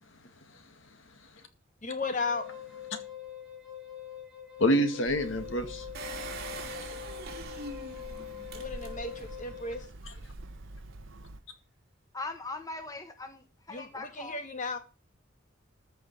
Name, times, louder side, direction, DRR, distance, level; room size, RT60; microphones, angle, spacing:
voice 1, 0.0-1.5 2.9-3.0 4.6-5.9 10.0-10.1, equal, 70° left, 2.1 m, -30 dB
voice 2, 1.8-2.4 8.5-9.9 13.7-14.8, left 3 dB, 40° left, 2.1 m, -35 dB
Wind instrument woodwind instrument, 2.0-9.8, left 11 dB, 5° right, 5.2 m, -44 dB
Hammer, 5.0-11.4, right 2 dB, 70° right, 1.0 m, -46 dB
Engine, 5.9-9.4 9.9-10.0 10.2-10.3, right 3 dB, 50° right, 3.0 m, -43 dB
voice 3, 12.1-14.4, left 3 dB, 20° left, 1.4 m, -40 dB
13.5 x 5.6 x 6.9 m
head